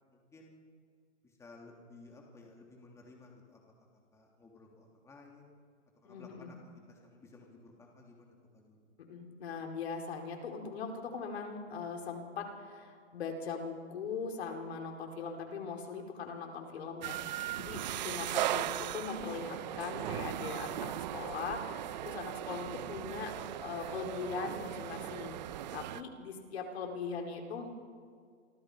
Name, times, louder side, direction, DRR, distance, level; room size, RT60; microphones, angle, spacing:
voice 1, 0.1-0.5 1.4-3.6 4.1-5.5 6.0-6.6 6.9-8.8, left 3 dB, 10° left, -1 dB, 3.2 m, -56 dB
voice 2, 6.0-6.5 9.1-23.3 23.6-27.8, left 5 dB, 55° left, 2 dB, 4.9 m, -40 dB
sound 1, 17.0-26.0, right 13 dB, 35° right, 0.8 m, -38 dB
29.0 x 25.0 x 5.2 m, 2.1 s
hypercardioid pair, 150°, 37 cm